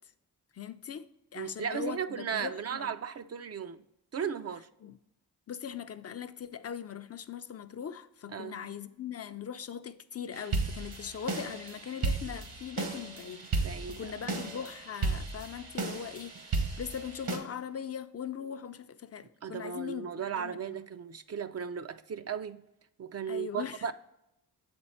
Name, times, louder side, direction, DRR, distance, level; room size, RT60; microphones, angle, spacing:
voice 1, 0.5-2.9 4.8-4.9 5.5-20.1 20.4-20.6 23.3-23.9, left 8 dB, 40° left, 0.4 m, -40 dB
voice 2, 1.4-3.8 4.1-4.7 8.3-8.6 13.6-14.1 19.4-22.6 23.0-23.9, right 7 dB, 45° right, 0.4 m, -36 dB
sound 1, 10.3-17.4, right 3 dB, 70° right, 1.4 m, -34 dB
7.2 x 4.3 x 4.2 m
cardioid pair, 65°, 37 cm